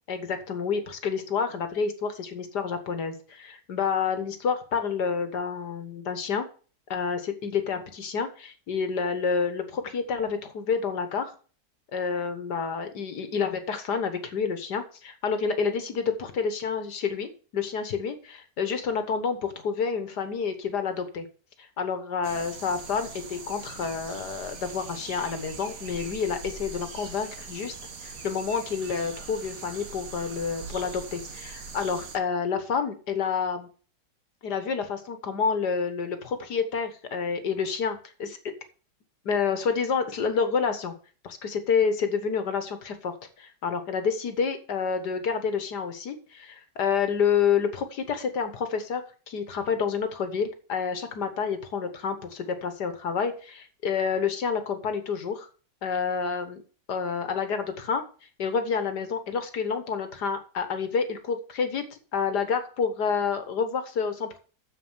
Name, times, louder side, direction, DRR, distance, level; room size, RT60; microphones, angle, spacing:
voice 1, 0.1-6.5 6.9-11.4 11.9-21.3 21.8-27.7 28.0-33.7 34.4-38.4 39.3-40.9 41.2-55.5 55.8-56.6 56.9-58.0 58.4-61.8 62.1-64.4, left 6 dB, 70° left, 8 dB, 1.9 m, -29 dB
sound 1, 22.2-32.2, right 4 dB, 55° right, 1.7 m, -41 dB
7.5 x 7.3 x 7.4 m, 0.39 s
omnidirectional pair, 1.8 m